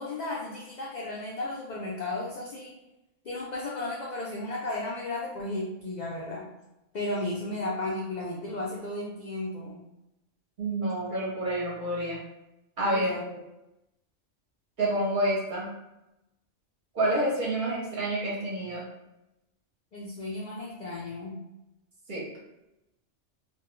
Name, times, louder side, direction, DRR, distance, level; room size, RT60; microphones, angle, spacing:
voice 1, 0.0-2.7 3.2-6.5 6.9-9.8 12.9-13.4 19.9-21.4, left 2 dB, 70° left, -4 dB, 0.4 m, -34 dB
voice 2, 10.6-12.2 12.8-13.1 14.8-15.7 16.9-18.9 22.1-22.2, right 1 dB, 50° right, -5 dB, 0.7 m, -28 dB
2.2 x 2.2 x 2.9 m, 0.92 s
omnidirectional pair, 1.3 m